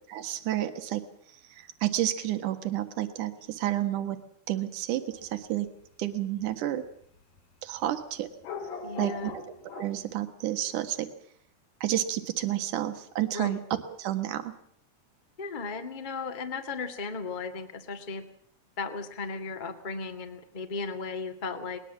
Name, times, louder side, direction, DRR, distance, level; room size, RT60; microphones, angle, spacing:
voice 1, 0.1-1.0 1.5-4.2 4.5-5.7 6.0-6.8 7.6-8.3 9.0-9.4 9.7-11.1 11.8-13.6 14.0-14.5, right 13 dB, 65° right, 9 dB, 2.8 m, -30 dB
sound 1, 5.1-5.4 6.5-6.6 7.4-7.5 8.4-10.0, left 4 dB, 70° left, 4.2 m, -39 dB
voice 2, 8.8-9.3 13.3-13.6 15.4-18.2 18.8-21.8, left 4 dB, 25° left, 4 dB, 1.1 m, -36 dB
21.0 x 20.0 x 7.4 m, 0.65 s
omnidirectional pair, 4.3 m